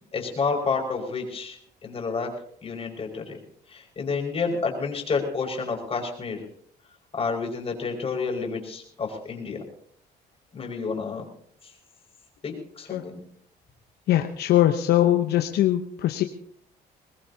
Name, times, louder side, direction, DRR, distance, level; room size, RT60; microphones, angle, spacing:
voice 1, 0.1-2.3 2.6-3.4 3.7-6.4 7.1-9.6 10.5-11.2 12.4-13.2, left 4 dB, 35° left, 1 dB, 5.4 m, -29 dB
voice 2, 14.1-16.2, left 13 dB, 70° left, 5 dB, 1.0 m, -21 dB
22.5 x 20.0 x 2.8 m, 0.63 s
cardioid pair, 110°, 17 cm